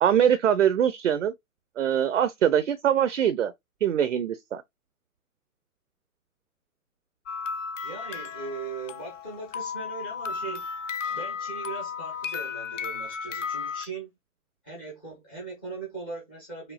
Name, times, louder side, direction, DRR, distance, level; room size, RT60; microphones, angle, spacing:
voice 1, 0.0-1.3 1.8-3.5 3.8-4.6, right 9 dB, 55° right, 0.5 m, -23 dB
sound 1, 7.3-13.9, left 6 dB, 55° left, 0.5 m, -34 dB
voice 2, 7.8-10.7 11.1-14.1 14.6-16.7, right 4 dB, 5° left, 0.5 m, -39 dB
5.0 x 2.2 x 2.3 m
figure-of-eight pair, 130°, 45 cm